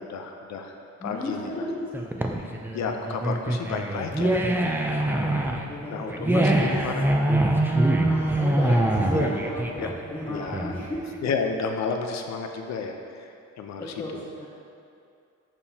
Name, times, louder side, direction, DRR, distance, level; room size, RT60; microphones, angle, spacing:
voice 1, 0.0-1.7 2.7-4.4 4.9-5.5 5.9-7.2 9.1-9.3 9.8-9.9 10.3-10.8 11.2-14.2, left 5 dB, 65° left, 4 dB, 0.6 m, -32 dB
voice 2, 1.0-1.9 5.7-6.7 8.1-11.0 13.8-14.5, left 2 dB, 20° left, -5 dB, 0.7 m, -35 dB
sound 1, 1.9-11.0, right 1 dB, 5° right, 0.4 m, -24 dB
7.0 x 5.3 x 2.8 m, 2.5 s
cardioid pair, 90°, 30 cm